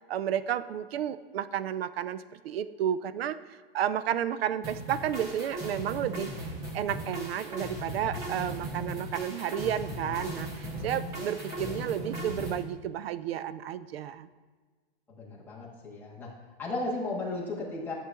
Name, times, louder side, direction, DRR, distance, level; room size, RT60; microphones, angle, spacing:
voice 1, 0.1-6.3 6.7-14.3, right 10 dB, 70° right, 15 dB, 0.5 m, -32 dB
sound 1, 4.6-12.6, right 1 dB, 10° right, 0.4 m, -37 dB
voice 2, 11.4-12.0 15.1-16.3 16.6-17.9, left 2 dB, 5° left, -5 dB, 1.1 m, -35 dB
11.0 x 7.2 x 2.3 m, 1.5 s
hypercardioid pair, 165°, 31 cm